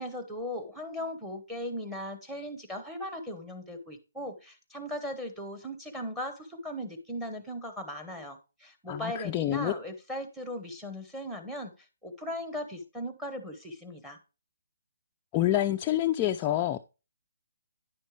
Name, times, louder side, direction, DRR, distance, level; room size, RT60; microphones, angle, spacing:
voice 1, 0.0-11.7 12.0-14.2, equal, 5° right, 1.1 m, -38 dB
voice 2, 8.9-9.7 15.3-16.8, left 13 dB, 20° left, 0.4 m, -27 dB
10.0 x 6.4 x 3.2 m
hypercardioid pair, 165°, 0 cm